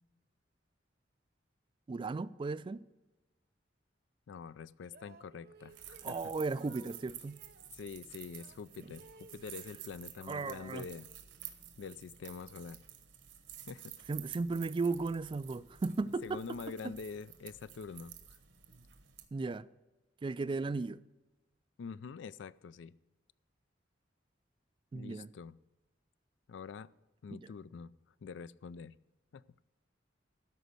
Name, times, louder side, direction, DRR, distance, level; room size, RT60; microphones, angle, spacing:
voice 1, 1.9-2.8 6.0-7.4 10.3-10.8 14.1-16.6 19.3-19.7 20.2-21.0 24.9-25.3 27.3-27.4, right 3 dB, 25° right, 0.3 m, -35 dB
voice 2, 4.3-6.3 7.7-11.1 11.8-12.8 13.7-14.2 16.2-18.4 21.8-22.9 24.9-25.6 26.5-26.9 27.2-27.9 28.2-29.0 29.3-29.4, left 5 dB, 70° left, 0.4 m, -46 dB
sound 1, 4.8-7.7 8.4-10.4 10.7-11.8, right 4 dB, 55° right, 0.9 m, -60 dB
sound 2, 5.7-19.3, right 11 dB, 80° right, 1.2 m, -52 dB
13.0 x 5.1 x 8.1 m
head